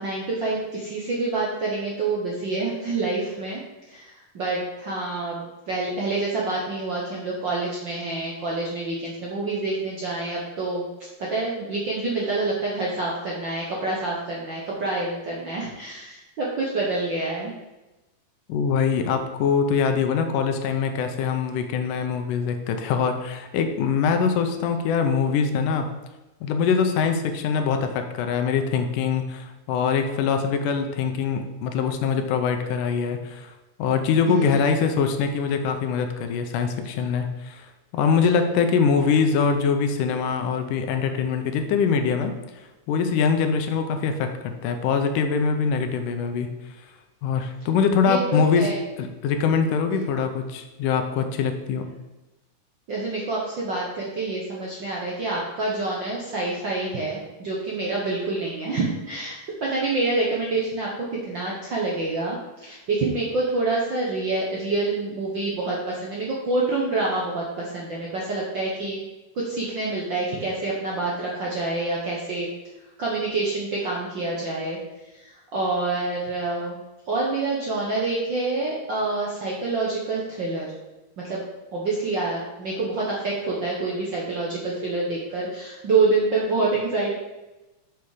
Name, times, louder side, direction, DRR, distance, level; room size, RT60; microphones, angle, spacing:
voice 1, 0.0-3.6 3.9-10.9 11.2-17.5 34.2-34.8 48.0-48.8 49.9-50.0 52.9-69.0 69.3-72.5 73.0-80.7 81.2-81.4 81.7-87.1, right 3 dB, 60° right, -4 dB, 1.2 m, -27 dB
voice 2, 18.5-25.9 26.4-33.5 33.8-37.7 37.9-42.3 42.9-46.5 47.2-48.7 49.0-51.9, left 6 dB, 85° left, 6 dB, 2.3 m, -23 dB
6.9 x 6.1 x 4.9 m, 1.0 s
omnidirectional pair, 3.7 m